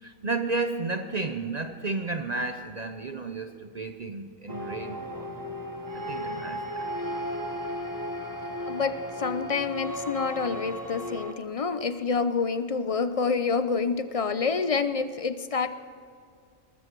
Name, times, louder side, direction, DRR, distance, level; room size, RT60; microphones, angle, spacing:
voice 1, 0.0-5.3 5.9-6.9, right 3 dB, 40° right, 7 dB, 0.7 m, -32 dB
sound 1, 4.5-11.3, equal, 15° right, 1.2 m, -35 dB
voice 2, 8.6-15.7, left 5 dB, 45° left, 11 dB, 0.4 m, -28 dB
20.0 x 14.5 x 4.6 m, 2.2 s
omnidirectional pair, 1.4 m